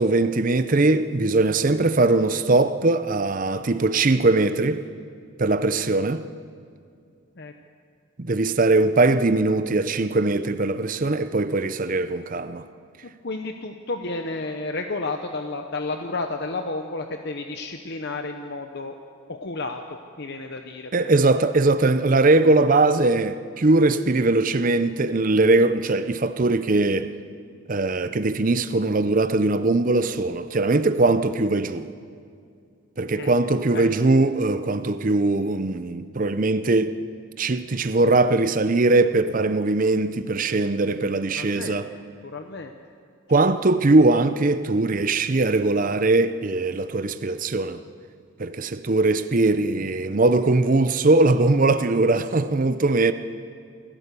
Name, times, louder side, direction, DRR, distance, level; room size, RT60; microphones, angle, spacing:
voice 1, 0.0-4.8 5.4-6.2 8.2-12.6 20.9-27.1 27.7-31.9 33.0-37.0 37.4-41.9 43.3-47.8 48.4-53.1, right 2 dB, 40° right, 0.6 m, -21 dB
voice 2, 13.2-19.0 19.3-21.1 33.1-33.3 33.7-33.9 41.3-41.8 42.2-42.7 49.7-50.1, left 3 dB, 55° left, 0.9 m, -32 dB
27.5 x 14.0 x 6.9 m
head